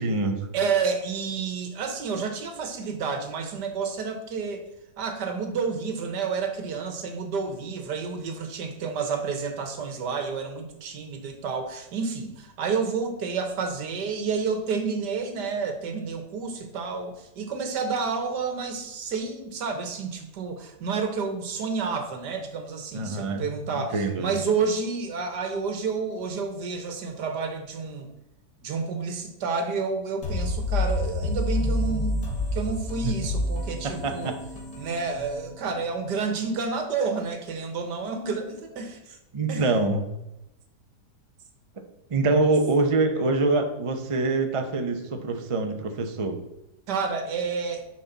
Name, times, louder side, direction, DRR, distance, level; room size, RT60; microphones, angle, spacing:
voice 1, 0.0-0.4 22.9-23.4 23.7-24.3 33.0-33.1 34.0-34.3 39.3-40.0 42.1-46.4, right 3 dB, 30° right, 5 dB, 0.6 m, -25 dB
voice 2, 0.5-4.6 5.0-28.1 28.6-32.2 32.5-34.4 34.8-39.2 39.5-39.6 46.9-47.9, right 5 dB, 85° right, 6 dB, 1.8 m, -30 dB
sound 1, 30.2-35.9, left 2 dB, 60° left, 2.5 m, -29 dB
9.8 x 6.1 x 4.0 m, 0.91 s
omnidirectional pair, 1.8 m